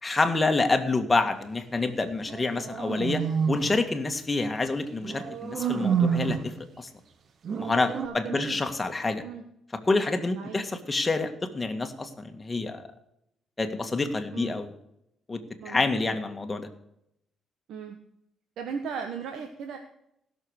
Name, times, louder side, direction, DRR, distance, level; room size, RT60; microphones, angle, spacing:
voice 1, 0.0-3.2 3.5-6.9 7.6-9.2 9.8-12.8 13.6-14.7 15.3-15.4 15.7-16.7, left 3 dB, 25° left, 6 dB, 1.9 m, -27 dB
sound 1, 2.2-3.8 5.0-6.5 7.4-8.1, right 7 dB, 55° right, 1.1 m, -28 dB
voice 2, 8.0-8.6 9.2-9.4 10.4-10.6 14.3-14.5 15.6-16.1 17.7-18.0 18.6-19.8, right 6 dB, 80° right, 5 dB, 1.3 m, -37 dB
16.0 x 6.8 x 6.5 m, 0.78 s
cardioid pair, 90°, 0 cm